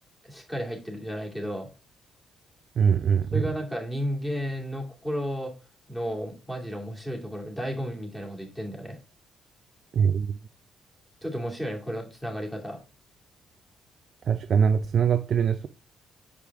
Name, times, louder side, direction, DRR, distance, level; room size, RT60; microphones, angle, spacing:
voice 1, 0.3-1.7 3.3-5.5 5.9-9.0 11.2-12.8, equal, 5° left, 2.3 m, -33 dB
voice 2, 2.8-3.5 9.9-10.3 14.3-15.7, right 7 dB, 55° right, 0.4 m, -22 dB
6.5 x 5.0 x 3.5 m
cardioid pair, 90°, 0 cm